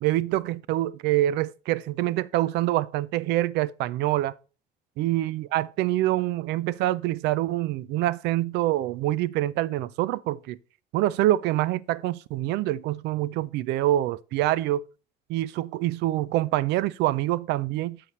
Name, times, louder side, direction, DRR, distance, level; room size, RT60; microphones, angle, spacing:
voice 1, 0.0-4.3 5.0-10.6 10.9-14.8 15.3-18.0, right 15 dB, 85° right, 0.4 m, -25 dB
8.3 x 7.4 x 3.1 m
cardioid pair, 110°, 17 cm